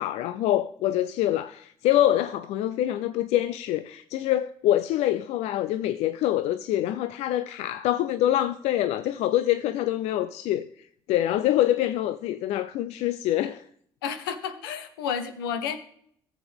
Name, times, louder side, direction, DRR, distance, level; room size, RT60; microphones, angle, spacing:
voice 1, 0.0-13.7, left 13 dB, 70° left, 0.4 m, -25 dB
voice 2, 14.0-15.8, left 7 dB, 85° left, 0.7 m, -31 dB
14.0 x 7.2 x 3.5 m
hypercardioid pair, 50°, 11 cm